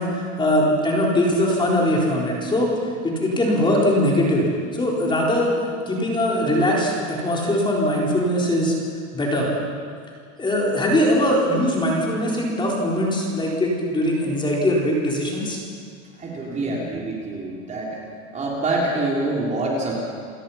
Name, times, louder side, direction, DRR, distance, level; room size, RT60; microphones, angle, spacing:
voice 1, 0.0-2.7 3.0-4.5 4.7-5.5 5.9-8.7 9.1-9.5 10.4-15.6 16.6-16.7, left 1 dB, 10° left, -3 dB, 4.1 m, -21 dB
voice 2, 16.2-18.0 18.3-19.9, right 2 dB, 20° right, -3 dB, 3.6 m, -25 dB
29.0 x 17.0 x 5.8 m, 2.1 s
supercardioid pair, 150°, 39 cm